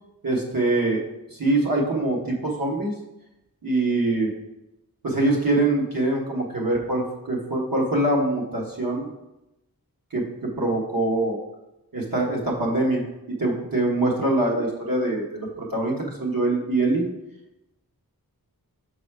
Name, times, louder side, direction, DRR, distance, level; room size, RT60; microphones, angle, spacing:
voice 1, 0.2-1.0 1.3-2.9 3.6-4.3 5.0-9.1 10.1-10.2 10.6-11.4 11.9-13.0 13.4-17.0, right 2 dB, 65° right, -2 dB, 1.4 m, -23 dB
5.6 x 4.1 x 4.8 m, 0.92 s
wide cardioid pair, 75°, 37 cm